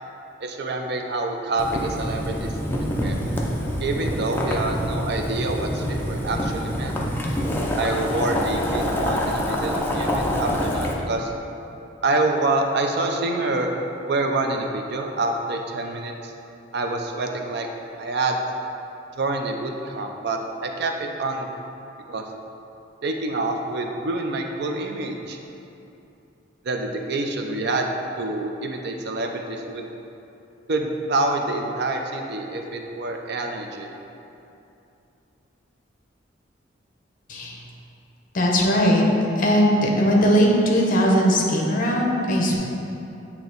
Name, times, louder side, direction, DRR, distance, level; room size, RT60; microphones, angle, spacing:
voice 1, 0.4-2.5 3.0-3.2 3.8-6.9 7.8-11.3 12.0-13.7 14.1-16.3 16.7-17.7 18.0-18.4 19.2-21.5 22.1-22.2 23.0-25.4 26.6-27.9 28.2-29.9 30.7-33.9, right 2 dB, 60° right, 3 dB, 0.5 m, -27 dB
Boiling, 1.6-10.9, equal, 10° left, 0.5 m, -26 dB
voice 2, 38.3-39.0 39.4-42.6, equal, 45° left, -1 dB, 0.8 m, -19 dB
8.6 x 2.9 x 3.9 m, 2.8 s
head